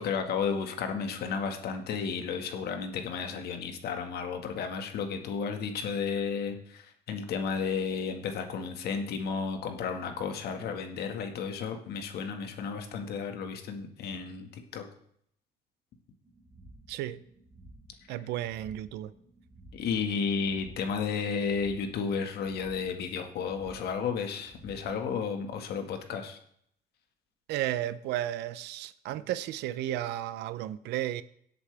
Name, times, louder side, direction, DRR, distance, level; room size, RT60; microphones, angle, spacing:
voice 1, 0.0-14.8 19.7-26.4, left 6 dB, 70° left, 1.8 m, -33 dB
sound 1, 16.2-25.3, right 1 dB, 20° right, 4.4 m, -55 dB
voice 2, 16.9-17.2 18.1-19.1 27.5-31.2, right 13 dB, 85° right, 0.7 m, -33 dB
18.5 x 8.0 x 3.5 m
cardioid pair, 110°, 17 cm